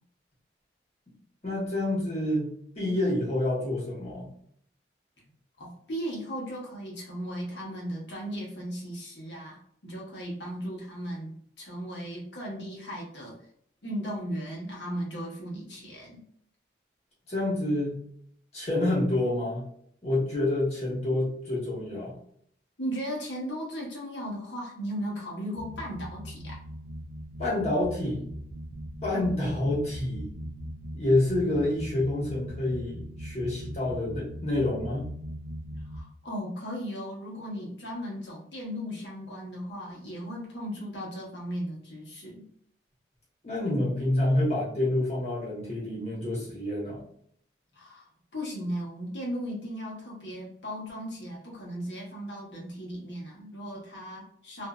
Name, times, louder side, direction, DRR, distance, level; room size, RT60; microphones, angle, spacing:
voice 1, 1.4-4.3 17.3-18.0 18.5-19.6 20.0-22.1 27.4-28.2 29.0-30.3 30.9-35.1 43.4-47.0, left 1 dB, 35° left, -7 dB, 1.2 m, -28 dB
voice 2, 5.6-11.3 11.6-13.3 13.8-16.2 22.8-26.6 35.9-42.4 47.7-48.1 48.3-54.7, equal, 75° left, -3 dB, 1.1 m, -36 dB
sound 1, 25.6-36.0, equal, 35° right, 0.3 m, -40 dB
2.6 x 2.6 x 2.3 m, 0.66 s
head